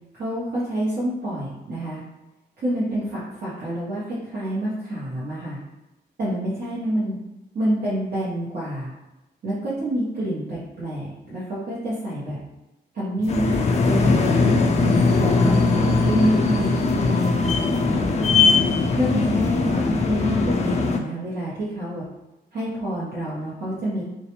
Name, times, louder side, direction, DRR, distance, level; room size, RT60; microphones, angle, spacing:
voice 1, 0.1-2.0 2.6-5.6 6.2-7.2 7.5-8.9 9.4-12.4 12.9-13.6 13.8-14.3 14.8-18.2 19.0-22.0 22.5-24.0, right 1 dB, 55° right, -10 dB, 0.9 m, -27 dB
sound 1, 13.2-16.7 17.0-19.7, right 2 dB, 35° right, 0.6 m, -37 dB
sound 2, 13.3-21.0, left 3 dB, 35° left, 0.4 m, -20 dB
2.4 x 2.1 x 2.9 m, 1.0 s
cardioid pair, 95°, 18 cm